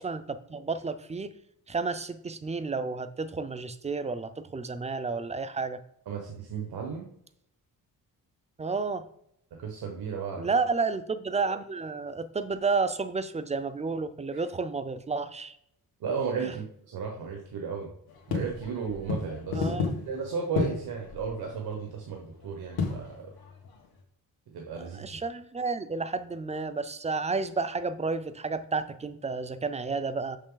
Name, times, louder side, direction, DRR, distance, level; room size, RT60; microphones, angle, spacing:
voice 1, 0.0-1.3 1.7-5.8 8.6-9.1 10.4-15.6 16.4-16.5 19.5-19.9 24.8-30.4, right 4 dB, 20° right, 12 dB, 0.4 m, -31 dB
voice 2, 6.1-7.1 9.6-10.5 14.3-14.4 16.0-17.9 18.3-19.8 20.1-23.3 24.5-25.2, right 6 dB, 85° right, 1 dB, 1.2 m, -34 dB
sound 1, 18.1-24.0, left 4 dB, 90° left, 1.7 m, -33 dB
6.4 x 6.0 x 3.9 m, 0.74 s
cardioid pair, 130°, 36 cm